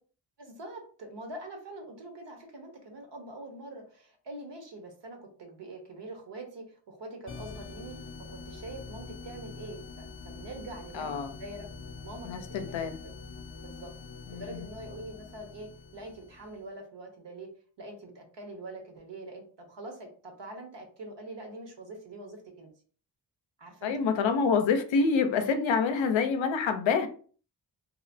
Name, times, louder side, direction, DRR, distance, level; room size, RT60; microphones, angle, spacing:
voice 1, 0.4-7.9 8.3-11.7 12.0-13.1 13.6-13.9 14.3-17.5 17.8-22.7 23.6-24.3, right 2 dB, 70° right, 3 dB, 0.9 m, -44 dB
sound 1, 7.3-16.6, left 4 dB, 30° left, 0.4 m, -45 dB
voice 2, 10.9-11.3 12.2-13.0 14.3-14.4 23.8-27.1, left 5 dB, 85° left, 8 dB, 0.5 m, -26 dB
2.9 x 2.0 x 2.5 m, 0.43 s
cardioid pair, 55°, 45 cm